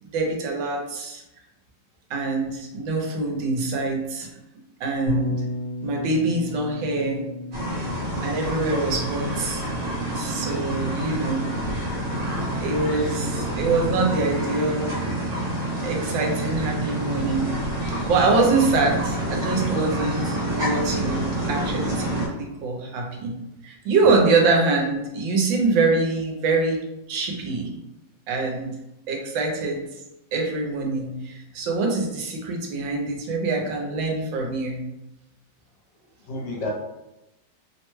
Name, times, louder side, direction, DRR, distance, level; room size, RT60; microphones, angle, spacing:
voice 1, 0.1-1.2 2.1-4.3 4.8-5.4 5.8-7.3 8.2-9.7 10.1-11.5 12.6-15.0 15.8-17.5 18.1-23.4 23.6-26.8 27.1-27.7 28.3-28.8 29.1-29.8 30.3-34.8, right 3 dB, 80° right, 1 dB, 1.4 m, -24 dB
Bass guitar, 5.1-11.3, left 2 dB, 50° left, 1.6 m, -34 dB
sound 1, 7.5-22.3, right 1 dB, 55° right, 1.5 m, -28 dB
voice 2, 8.2-8.9 36.3-36.7, left 2 dB, 70° left, -2 dB, 1.2 m, -32 dB
3.3 x 2.1 x 3.0 m, 0.92 s
omnidirectional pair, 2.1 m